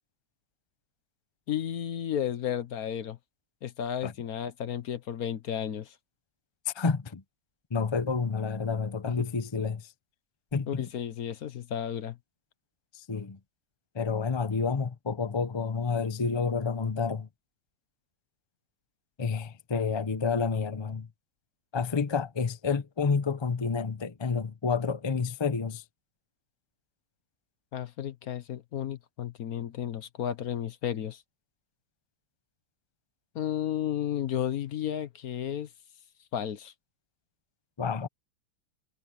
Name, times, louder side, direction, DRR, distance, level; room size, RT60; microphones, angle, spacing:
voice 1, 1.5-3.2 3.6-5.9 10.7-12.2 27.7-31.2 33.3-35.7 36.3-36.7, left 10 dB, 60° left, 1.3 m, -33 dB
voice 2, 6.7-7.2 7.7-9.9 10.5-10.8 12.9-13.4 13.9-17.3 19.2-21.1 21.7-25.8 37.8-38.1, left 5 dB, 40° left, 0.3 m, -29 dB
omnidirectional pair, 1.9 m